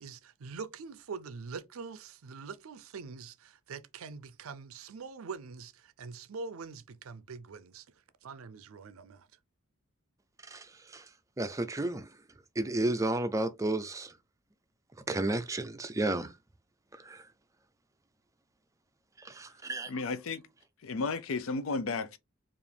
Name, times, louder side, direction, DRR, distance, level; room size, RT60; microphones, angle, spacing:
voice 1, 0.0-7.9 8.2-9.3, right 5 dB, 80° right, 0.5 m, -44 dB
voice 2, 10.5-11.0 11.4-12.1 12.6-14.1 15.1-16.3 17.0-17.2 19.2-19.9, right 2 dB, 15° right, 0.4 m, -32 dB
voice 3, 19.9-20.4 20.8-22.2, left 4 dB, 75° left, 0.5 m, -33 dB
4.8 x 2.5 x 3.3 m
head